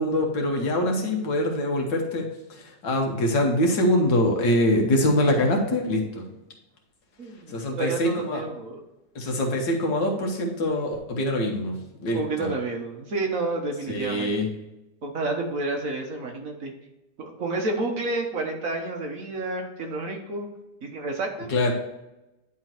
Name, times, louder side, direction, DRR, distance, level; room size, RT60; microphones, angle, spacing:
voice 1, 0.0-6.2 7.5-8.4 9.2-12.5 13.9-14.5 21.5-21.7, left 1 dB, 80° left, 1 dB, 2.1 m, -24 dB
voice 2, 7.2-8.8 12.1-14.3 15.0-16.7 17.2-20.5 20.8-21.5, right 2 dB, 55° right, 2 dB, 1.4 m, -30 dB
10.0 x 3.7 x 4.4 m, 0.94 s
omnidirectional pair, 1.9 m